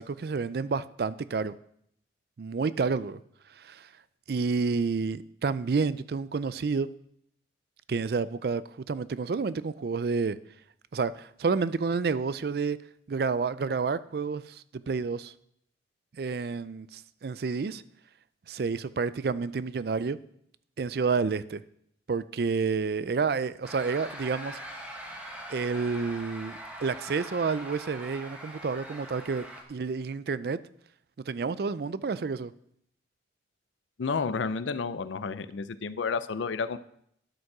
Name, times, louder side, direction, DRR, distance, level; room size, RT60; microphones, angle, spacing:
voice 1, 0.0-1.5 2.4-3.2 3.6-3.9 4.3-6.9 7.9-10.4 10.9-12.8 13.1-15.3 16.2-17.8 18.5-20.2 20.8-21.6 22.1-24.6 25.5-30.6 31.3-32.5, right 4 dB, 55° right, 16 dB, 0.4 m, -29 dB
sound 1, 23.6-29.6, equal, 5° right, 1.3 m, -42 dB
voice 2, 34.0-36.8, left 5 dB, 85° left, 13 dB, 0.5 m, -31 dB
11.5 x 5.3 x 6.0 m, 0.71 s
head